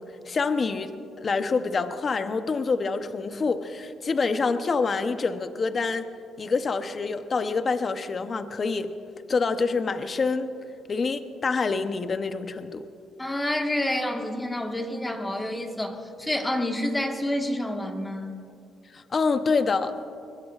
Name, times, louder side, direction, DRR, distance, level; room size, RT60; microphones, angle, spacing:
voice 1, 0.0-6.0 6.4-8.9 9.3-10.5 10.9-12.9 18.9-20.0, left 4 dB, 40° left, 9 dB, 0.8 m, -26 dB
voice 2, 13.2-18.3, left 1 dB, 15° left, 3 dB, 1.6 m, -28 dB
23.0 x 21.0 x 2.5 m, 2.5 s
cardioid pair, 90°, 0 cm